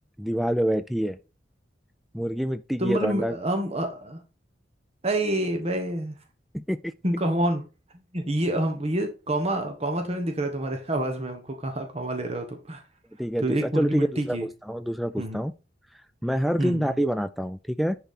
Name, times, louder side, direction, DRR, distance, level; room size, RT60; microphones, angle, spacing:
voice 1, 0.2-1.2 2.1-3.4 6.5-6.9 13.2-15.5 16.2-18.0, equal, ahead, 0.3 m, -27 dB
voice 2, 2.8-4.2 5.0-6.1 7.0-7.6 8.1-12.8 13.4-14.4 15.2-15.4 16.6-17.0, right 1 dB, 35° right, 1.3 m, -27 dB
10.5 x 4.6 x 4.3 m
head